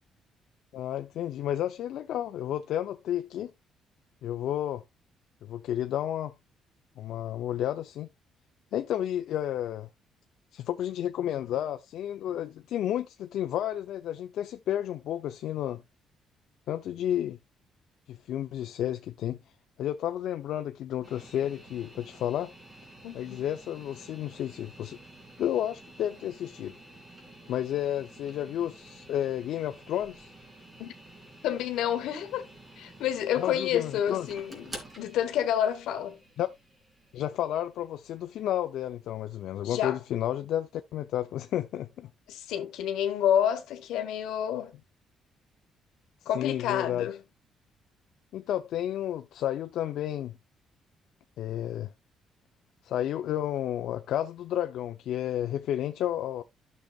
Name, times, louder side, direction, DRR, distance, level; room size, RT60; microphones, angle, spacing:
voice 1, 0.7-3.5 4.2-4.8 5.4-6.3 7.0-8.1 8.7-9.9 10.5-15.8 16.7-17.4 18.1-19.4 19.8-22.5 23.1-25.0 25.4-26.7 27.5-30.3 33.4-34.3 36.4-36.5 37.1-42.1 46.3-47.1 48.3-50.3 51.4-51.9 52.8-56.4, left 11 dB, 75° left, 0.5 m, -31 dB
sound 1, 21.0-39.1, right 1 dB, 25° right, 3.0 m, -50 dB
voice 2, 23.0-23.4 30.8-30.9 31.4-32.5 32.8-36.2 39.6-40.0 42.3-44.8 46.2-47.2, left 10 dB, 90° left, 1.3 m, -29 dB
12.0 x 6.6 x 2.4 m
cardioid pair, 125°, 0 cm